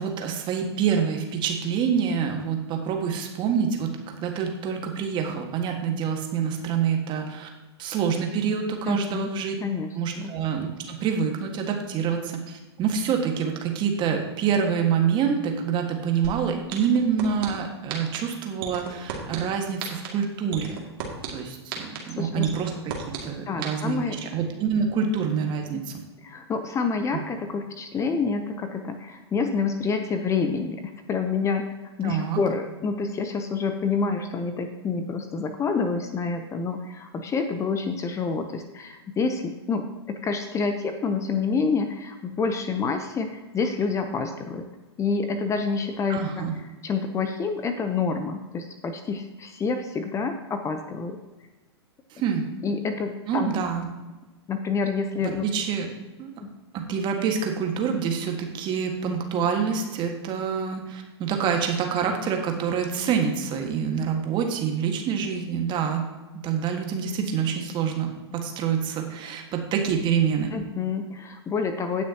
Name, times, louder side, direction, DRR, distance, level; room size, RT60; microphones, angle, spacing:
voice 1, 0.0-7.5 7.8-9.5 9.9-20.8 21.3-22.7 23.2-25.8 32.0-32.4 46.1-46.5 52.1-52.4 53.3-53.8 55.4-55.9 56.2-56.3 56.7-66.0 66.4-70.5, right 7 dB, 35° right, 3 dB, 1.7 m, -26 dB
voice 2, 8.9-9.3 9.6-10.3 22.2-22.5 23.5-24.2 25.7-25.8 26.2-31.7 32.0-44.6 45.0-46.5 46.8-51.2 52.6-53.6 54.5-55.5 56.4-56.5 70.5-72.0, left 5 dB, 20° left, 7 dB, 0.8 m, -28 dB
sound 1, 16.2-16.3 16.7-17.5 17.9-18.2 18.6-19.4 19.8-20.1 20.5-21.3 21.7-22.0 22.4-23.2 23.6-23.7, right 14 dB, 55° right, 2.3 m, -32 dB
17.5 x 6.2 x 2.9 m, 1.1 s
hypercardioid pair, 110°, 14 cm